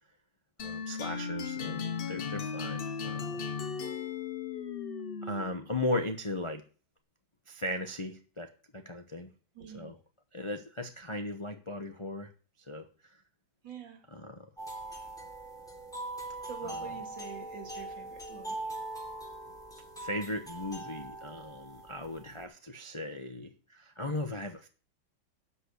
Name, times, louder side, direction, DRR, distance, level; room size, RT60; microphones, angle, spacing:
sound 1, 0.6-5.7, left 6 dB, 80° left, 0.5 m, -36 dB
voice 1, 0.6-3.5 5.2-6.6 7.5-9.3 9.7-9.9 10.3-12.3 12.7-12.9 14.1-14.5 16.6-16.9 20.0-24.7, left 1 dB, 30° left, 0.6 m, -37 dB
voice 2, 9.5-9.9 13.6-14.1 16.4-18.7, right 5 dB, 70° right, 2.5 m, -45 dB
sound 2, 14.6-22.4, right 2 dB, ahead, 3.0 m, -42 dB
12.0 x 5.6 x 8.3 m
omnidirectional pair, 2.2 m